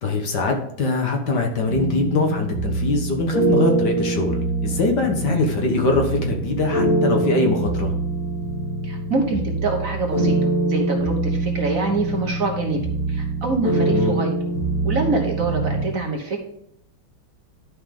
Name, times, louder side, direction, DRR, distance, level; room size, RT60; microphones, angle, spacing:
voice 1, 0.0-7.9 13.9-14.2, left 3 dB, 60° left, 3 dB, 1.8 m, -22 dB
sound 1, 1.7-15.8, right 2 dB, 85° left, 5.0 m, -24 dB
voice 2, 8.8-12.8 13.1-14.3 14.8-16.4, right 3 dB, 45° right, 1 dB, 1.5 m, -25 dB
11.5 x 5.5 x 3.7 m, 0.75 s
omnidirectional pair, 2.2 m